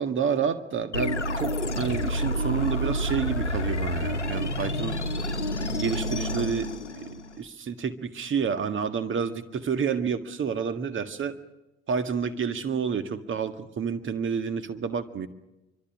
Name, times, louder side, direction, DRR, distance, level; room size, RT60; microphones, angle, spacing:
voice 1, 0.0-5.0 5.7-7.1 7.4-11.4 11.9-15.3, right 6 dB, 35° right, 9 dB, 1.8 m, -29 dB
sound 1, 0.9-7.4, left 1 dB, 85° left, 1.0 m, -29 dB
25.5 x 24.5 x 6.2 m, 0.99 s
figure-of-eight pair, 55°, 34 cm